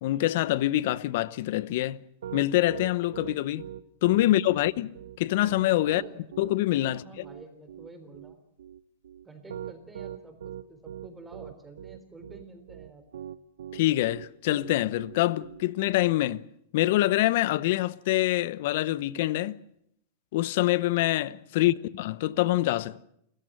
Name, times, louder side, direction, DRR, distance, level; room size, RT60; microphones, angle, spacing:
voice 1, 0.0-2.0 2.3-3.7 4.0-6.0 6.4-7.0 13.7-16.4 16.7-19.6 20.3-23.0, left 16 dB, 60° left, 0.8 m, -25 dB
Piano, 1.9-16.1, right 10 dB, 90° right, 0.8 m, -41 dB
voice 2, 5.8-6.2 6.8-8.4 9.2-13.0 21.5-21.7, right 3 dB, 10° right, 3.8 m, -49 dB
29.0 x 14.5 x 7.6 m
supercardioid pair, 140°, 0 cm